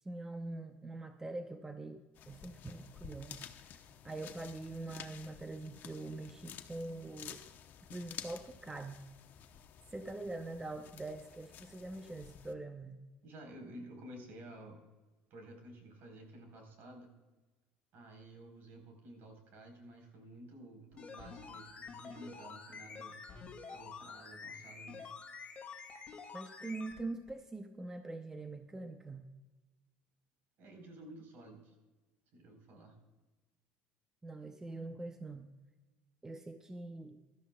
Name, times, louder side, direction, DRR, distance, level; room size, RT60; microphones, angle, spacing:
voice 1, 0.0-3.5 4.0-7.4 7.9-9.0 9.9-13.0 26.3-29.3 34.2-35.5 36.2-37.2, right 2 dB, 15° right, 6 dB, 0.7 m, -44 dB
sound 1, 2.1-12.5, left 9 dB, 55° left, 0.9 m, -52 dB
voice 2, 13.2-14.8 15.3-17.1 17.9-23.2 23.7-25.1 30.6-31.7 32.3-33.0, right 1 dB, 60° right, 3 dB, 4.0 m, -52 dB
sound 2, 20.9-27.0 27.3-27.4, left 5 dB, 30° left, 2.2 m, -48 dB
16.5 x 12.5 x 2.3 m, 1.2 s
supercardioid pair, 105°, 4 cm